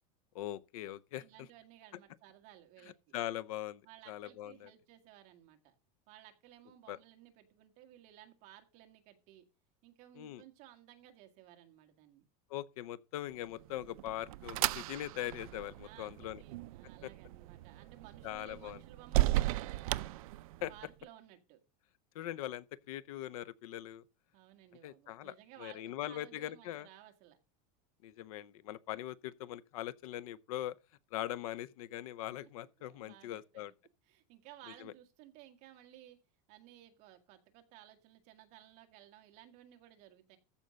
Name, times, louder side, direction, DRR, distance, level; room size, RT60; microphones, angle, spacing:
voice 1, 0.3-1.2 3.1-4.7 6.9-7.0 10.2-10.4 12.5-16.4 17.0-17.1 18.2-18.8 20.6-20.7 22.1-24.0 24.8-26.9 28.0-30.7 31.1-33.7 34.8-34.9, left 13 dB, 65° left, 0.6 m, -41 dB
voice 2, 1.2-3.1 3.8-5.7 6.1-9.4 9.8-12.2 15.8-20.2 20.7-21.6 24.3-27.4 32.3-33.7 34.1-36.2 36.5-40.4, right 12 dB, 35° right, 1.7 m, -58 dB
sound 1, 13.5-20.9, right 17 dB, 65° right, 0.5 m, -36 dB
14.0 x 5.4 x 6.3 m
supercardioid pair, 175°, 20 cm